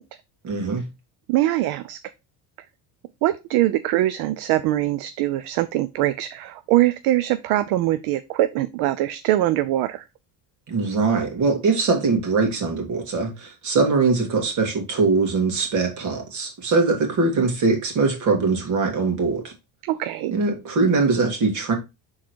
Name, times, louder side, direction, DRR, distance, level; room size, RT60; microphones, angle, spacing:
voice 1, 0.4-0.8 10.7-19.5 20.3-21.7, right 4 dB, 45° right, 2.4 m, -22 dB
voice 2, 1.3-2.0 3.2-10.0 19.8-20.3, right 15 dB, 70° right, 0.6 m, -22 dB
6.2 x 3.9 x 4.5 m
cardioid pair, 160°, 39 cm